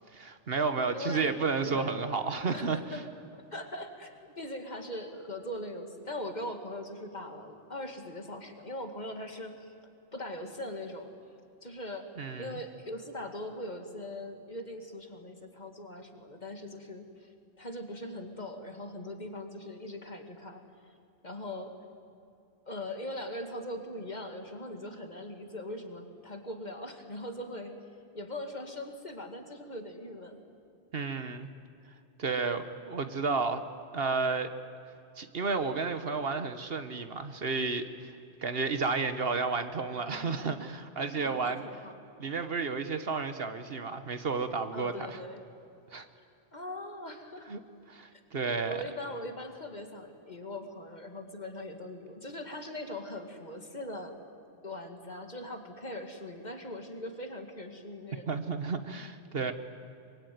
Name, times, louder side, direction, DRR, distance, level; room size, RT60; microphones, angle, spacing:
voice 1, 0.1-2.8 12.2-12.5 30.9-31.5 32.2-33.6 33.9-34.5 35.2-38.1 38.4-41.6 42.2-45.2 45.9-46.1 47.5-47.6 47.9-48.8 58.3-59.5, right 4 dB, 55° right, 9 dB, 1.3 m, -32 dB
voice 2, 0.9-1.4 1.6-2.0 2.5-3.0 3.5-9.7 10.1-11.1 11.6-12.1 12.4-17.3 17.6-20.9 21.2-21.7 22.7-27.7 28.1-30.4 41.1-42.0 44.7-45.4 46.5-47.5 48.1-48.2 48.6-54.2 54.6-58.3, left 1 dB, 40° left, 5 dB, 2.3 m, -41 dB
24.5 x 22.5 x 9.4 m, 2.6 s
omnidirectional pair, 1.2 m